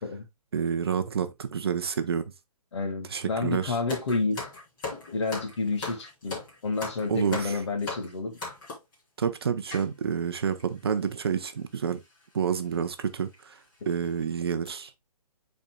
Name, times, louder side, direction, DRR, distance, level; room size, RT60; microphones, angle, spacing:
voice 1, 0.5-2.2 3.1-3.8 7.1-7.6 9.2-12.0 12.3-13.6 13.9-14.9, right 7 dB, 40° right, 0.6 m, -28 dB
voice 2, 2.7-4.4 5.1-8.4, left 3 dB, 50° left, 1.8 m, -30 dB
sound 1, 3.9-8.9 9.7-9.9 10.6-10.7 10.9-11.1 12.0-12.2 12.7-12.8 13.3-13.4 13.9-14.1 14.5-14.7, left 3 dB, 35° left, 3.3 m, -38 dB
10.0 x 4.4 x 2.2 m
hypercardioid pair, 175°, 19 cm